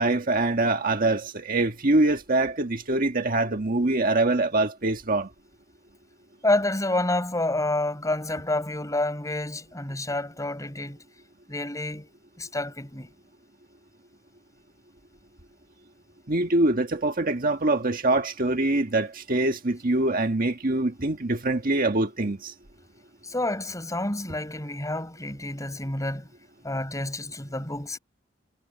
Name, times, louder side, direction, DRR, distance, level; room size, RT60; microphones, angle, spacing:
voice 1, 0.0-5.3 16.3-22.5, right 2 dB, 45° right, 1.7 m, -24 dB
voice 2, 6.4-11.0 11.5-12.1 12.4-13.1 23.2-26.3 26.6-28.0, left 2 dB, 15° left, 5.1 m, -28 dB
head